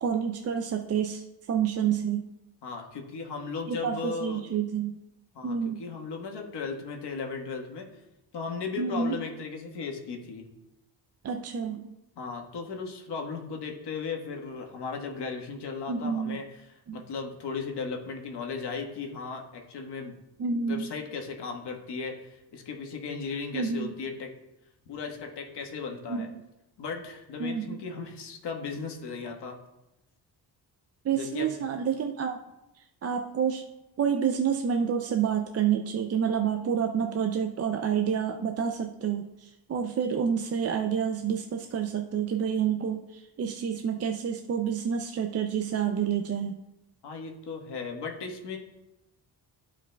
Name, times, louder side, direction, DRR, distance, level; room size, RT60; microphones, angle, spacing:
voice 1, 0.0-1.2 1.5-2.2 3.7-4.9 5.4-5.8 8.8-9.2 11.2-11.8 15.9-16.4 16.9-17.0 20.4-20.9 23.5-23.9 26.1-26.4 27.4-27.8 31.0-32.4 33.0-33.6 34.0-46.6, right 7 dB, 40° right, 4 dB, 0.4 m, -28 dB
voice 2, 2.6-4.4 5.3-7.8 8.3-10.5 12.2-20.1 20.7-24.3 24.9-26.3 26.8-29.6 31.1-31.6 47.0-48.6, left 5 dB, 75° left, 1 dB, 1.4 m, -36 dB
14.0 x 5.0 x 2.2 m, 0.93 s
wide cardioid pair, 130°, 41 cm